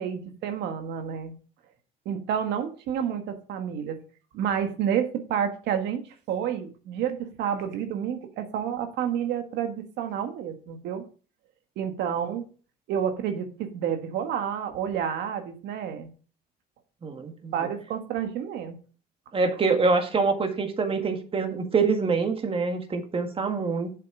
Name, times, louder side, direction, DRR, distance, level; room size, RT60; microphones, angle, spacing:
voice 1, 0.0-1.3 2.0-4.0 4.3-6.0 6.3-11.0 11.7-12.5 12.9-16.1 17.5-18.8, right 8 dB, 80° right, 7 dB, 1.6 m, -29 dB
voice 2, 17.0-17.5 19.3-23.9, right 4 dB, 35° right, 6 dB, 1.9 m, -25 dB
7.7 x 7.6 x 4.9 m, 0.38 s
cardioid pair, 110°, 17 cm